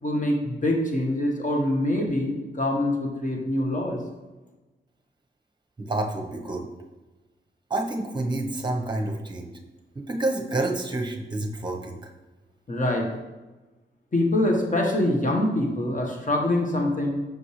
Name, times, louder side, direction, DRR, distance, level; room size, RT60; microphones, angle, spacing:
voice 1, 0.0-4.0 12.7-13.1 14.1-17.2, left 1 dB, 40° left, 1 dB, 1.4 m, -24 dB
voice 2, 5.8-6.7 7.7-9.5 9.9-12.0, right 2 dB, 25° right, 3 dB, 1.1 m, -28 dB
6.4 x 5.2 x 3.3 m, 1.1 s
cardioid pair, 65°, 19 cm